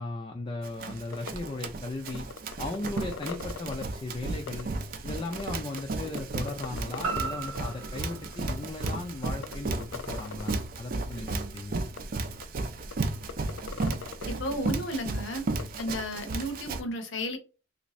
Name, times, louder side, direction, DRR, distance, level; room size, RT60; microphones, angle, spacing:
voice 1, 0.0-2.3 2.6-4.7 5.0-11.8, left 2 dB, 25° left, 3 dB, 0.4 m, -37 dB
Run, 0.6-16.8, right 3 dB, 45° right, 0.4 m, -34 dB
sound 1, 1.1-1.3 1.6-1.7 2.1-3.8 4.5-4.6 5.3-5.8 6.2-6.3 6.5-7.7 8.0-8.1 8.3-8.5 8.9-9.0 9.2-10.5 11.3-11.4 12.0-12.1 12.4-12.5 12.9-13.0 13.3-14.2 15.6-15.8, left 7 dB, 90° left, 0.4 m, -39 dB
sound 2, 7.0-11.1 11.6-11.7, right 5 dB, 85° right, 0.8 m, -39 dB
voice 2, 14.3-15.4 15.8-17.4, equal, 70° left, 6 dB, 0.8 m, -33 dB
3.4 x 2.6 x 3.0 m, 0.32 s
head